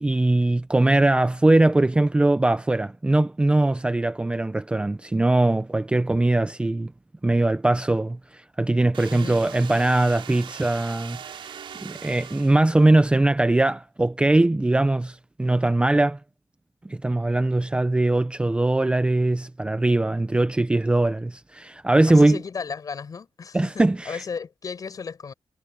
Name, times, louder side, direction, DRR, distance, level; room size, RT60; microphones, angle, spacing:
voice 1, 0.0-6.9 7.2-11.5 11.8-16.2 16.8-22.4 23.5-24.2, right 2 dB, 10° right, 0.6 m, -21 dB
sound 1, 8.9-13.0, right 8 dB, 80° right, 4.2 m, -40 dB
voice 2, 22.1-25.3, left 5 dB, 45° left, 6.7 m, -35 dB
wide cardioid pair, 150°, 9 cm